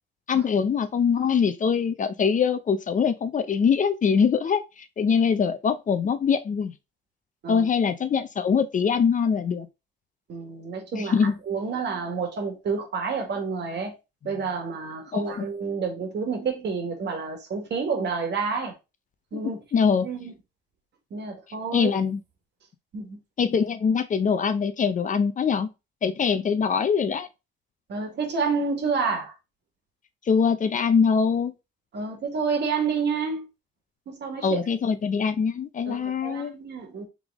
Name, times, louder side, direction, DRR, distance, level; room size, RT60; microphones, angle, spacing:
voice 1, 0.3-6.7 7.5-9.7 10.9-11.3 15.1-15.5 19.3-20.1 21.7-22.2 23.4-25.7 26.0-27.3 30.3-31.5 34.4-36.5, left 6 dB, 40° left, 0.6 m, -23 dB
voice 2, 10.3-13.9 14.2-18.7 19.3-19.6 20.0-20.3 21.1-21.9 22.9-23.2 27.9-29.3 31.9-33.5 34.1-34.6 35.9-37.0, right 5 dB, 60° right, 1.7 m, -29 dB
3.6 x 3.4 x 3.6 m
cardioid pair, 90°, 20 cm